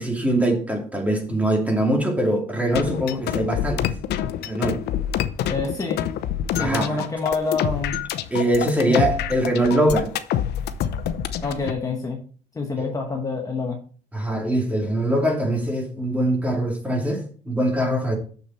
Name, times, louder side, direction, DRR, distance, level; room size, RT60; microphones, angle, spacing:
voice 1, 0.0-3.9 4.4-4.8 6.6-7.0 8.3-10.1 12.8-12.9 14.1-18.2, right 1 dB, 10° right, 2.4 m, -22 dB
sound 1, 2.7-11.7, left 10 dB, 75° left, 0.7 m, -26 dB
voice 2, 5.5-6.0 6.5-8.0 8.8-9.0 11.4-12.2 12.5-13.8, left 3 dB, 20° left, 1.2 m, -27 dB
6.7 x 6.7 x 4.2 m
cardioid pair, 110°, 17 cm